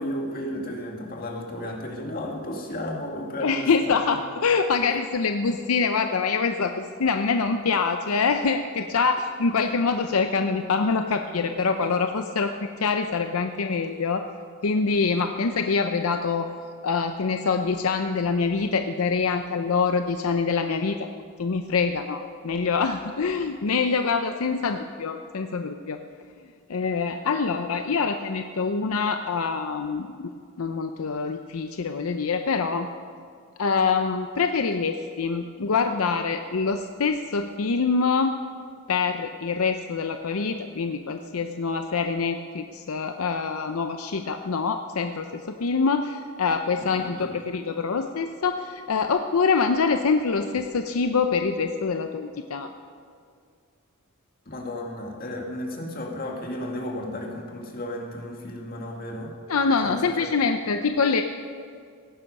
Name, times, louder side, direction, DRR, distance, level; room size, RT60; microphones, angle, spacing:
voice 1, 0.0-4.2 4.9-5.0 46.9-47.3 54.5-59.3 59.8-60.3, left 1 dB, 45° left, 0 dB, 2.1 m, -34 dB
voice 2, 3.4-12.5 12.8-14.3 14.6-16.5 16.8-21.1 21.4-26.0 26.7-30.3 30.6-32.9 33.6-38.4 38.9-52.7 59.5-61.2, left 5 dB, 80° left, 6 dB, 0.6 m, -25 dB
17.0 x 10.0 x 5.4 m, 2.2 s
head